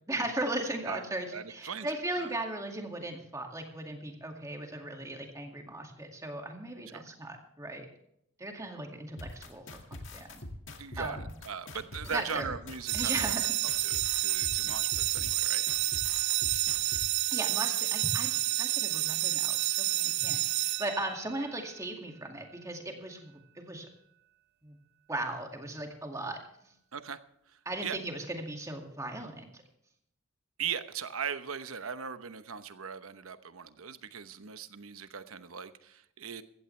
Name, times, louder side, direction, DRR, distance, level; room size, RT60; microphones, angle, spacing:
voice 1, 0.1-7.9 8.4-10.4 11.0-11.3 12.0-12.5 12.9-13.5 17.3-23.9 24.6-24.8 25.1-26.7 27.7-29.6, right 1 dB, 15° right, 3 dB, 2.1 m, -37 dB
voice 2, 1.3-1.9 2.2-2.3 6.9-7.0 10.8-11.2 11.4-13.4 13.8-15.6 26.9-27.2 27.8-28.0 30.6-36.4, right 7 dB, 80° right, 11 dB, 1.0 m, -39 dB
sound 1, 9.2-17.0, left 1 dB, 60° left, 2.1 m, -43 dB
sound 2, 12.9-21.5, right 16 dB, 50° right, 0.4 m, -30 dB
15.5 x 15.0 x 3.3 m, 0.74 s
head